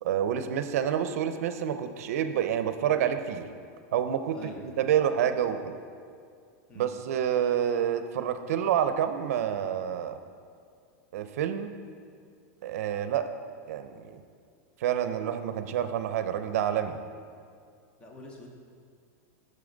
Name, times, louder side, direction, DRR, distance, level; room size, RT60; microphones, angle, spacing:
voice 1, 0.0-3.5 3.9-5.7 6.8-10.2 11.1-11.7 12.6-13.3 13.7-14.2 14.8-17.0, right 9 dB, 70° right, 9 dB, 0.5 m, -28 dB
voice 2, 4.3-4.6 6.7-7.0 18.0-18.5, left 1 dB, 10° left, 0 dB, 0.8 m, -45 dB
8.5 x 6.6 x 3.9 m, 2.2 s
supercardioid pair, 170°, 8 cm